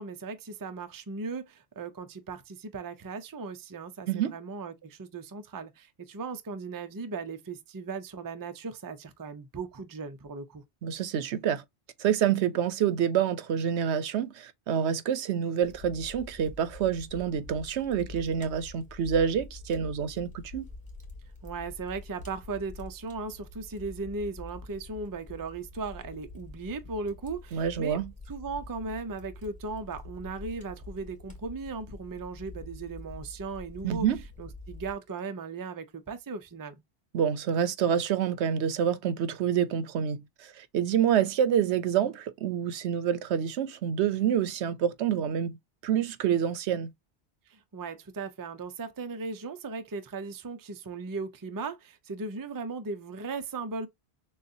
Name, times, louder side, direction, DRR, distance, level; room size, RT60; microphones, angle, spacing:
voice 1, 0.0-10.6 21.4-28.0 28.3-34.1 34.4-36.8 47.5-53.9, right 4 dB, 30° right, 0.4 m, -37 dB
voice 2, 10.8-11.6 12.0-20.7 27.5-28.1 33.8-34.2 37.1-45.6 45.8-46.9, right 8 dB, 80° right, 1.0 m, -27 dB
Fire, 15.6-34.9, left 2 dB, 5° left, 1.5 m, -46 dB
6.5 x 2.4 x 2.6 m
omnidirectional pair, 1.1 m